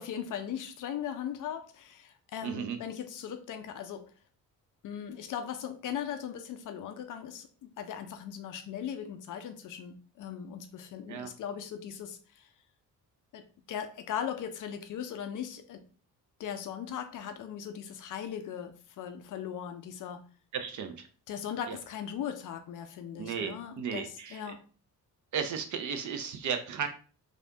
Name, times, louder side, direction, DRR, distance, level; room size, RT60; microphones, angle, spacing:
voice 1, 0.0-4.1 4.8-12.5 13.3-15.8 16.4-20.2 21.3-24.6, left 9 dB, 40° left, 8 dB, 0.5 m, -39 dB
voice 2, 2.4-2.8 11.1-11.3 20.5-20.9 21.7-21.8 23.2-24.5 25.3-26.9, right 7 dB, 40° right, 7 dB, 0.5 m, -34 dB
3.2 x 2.5 x 2.7 m, 0.39 s
figure-of-eight pair, 45°, 49 cm